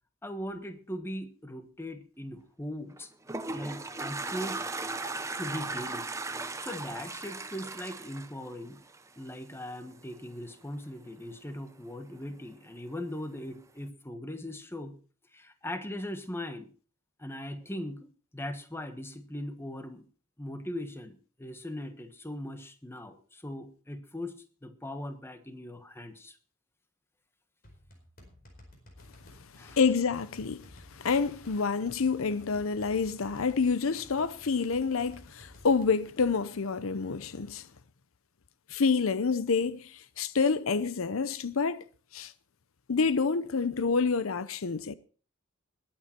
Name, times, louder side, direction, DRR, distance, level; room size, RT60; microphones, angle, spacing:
voice 1, 0.2-3.1 3.5-4.6 5.4-6.1 6.6-8.8 9.2-14.9 15.3-16.7 17.2-18.1 18.3-20.0 20.4-24.4 24.6-26.4 29.6-29.8, left 1 dB, 10° left, 1.3 m, -39 dB
Toilet flush, 2.9-9.3, right 3 dB, 15° right, 0.7 m, -37 dB
sound 1, 27.6-36.4, left 1 dB, 45° left, 4.7 m, -54 dB
voice 2, 29.6-37.7 38.7-41.8 42.1-42.3 42.9-44.9, left 5 dB, 75° left, 0.7 m, -28 dB
21.0 x 8.8 x 4.4 m
head